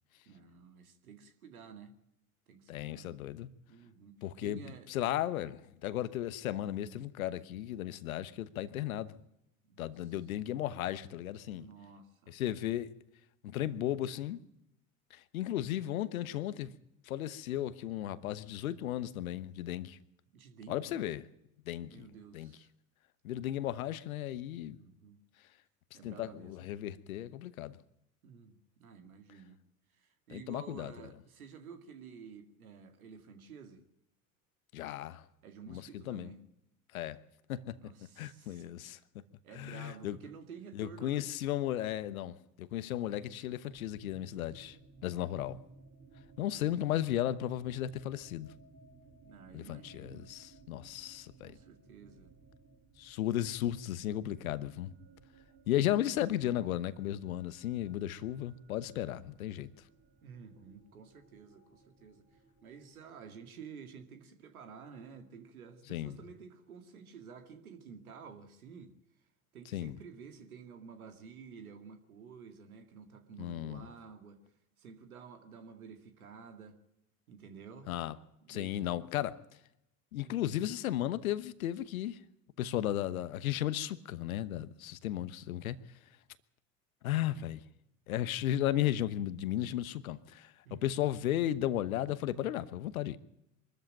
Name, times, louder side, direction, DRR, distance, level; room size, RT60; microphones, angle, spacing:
voice 1, 0.3-2.0 2.5-3.2 3.7-4.9 9.7-10.2 11.5-12.4 20.3-21.0 21.9-22.7 24.7-25.2 25.9-26.7 28.2-29.6 29.9-33.8 35.4-36.4 37.8-38.8 39.4-41.3 45.2-45.5 46.5-46.8 49.2-50.3 51.4-52.4 60.2-68.9 69.5-74.4 74.8-76.8 77.3-77.9 78.4-79.1 80.2-80.4 90.6-90.9, right 6 dB, 80° right, 2.2 m, -52 dB
voice 2, 2.7-3.5 4.2-4.6 4.9-9.1 9.8-11.6 12.3-12.9 13.4-14.4 15.1-16.7 17.1-20.0 20.7-21.2 21.7-22.1 22.3-22.5 23.2-24.8 26.0-27.8 30.3-30.9 34.7-35.2 35.7-36.3 36.9-37.2 37.5-37.8 38.2-39.0 39.6-40.2 40.7-44.8 45.0-45.6 46.4-48.5 49.5-51.5 53.0-54.9 55.7-59.7 65.9-66.2 69.7-69.9 73.4-73.9 77.9-78.1 78.5-79.4 80.1-82.2 82.6-85.8 87.0-87.6 88.1-93.2, left 12 dB, 75° left, 1.1 m, -35 dB
sound 1, 43.7-63.5, right 4 dB, 30° right, 3.4 m, -60 dB
24.0 x 13.5 x 9.0 m
figure-of-eight pair, 70°, 42 cm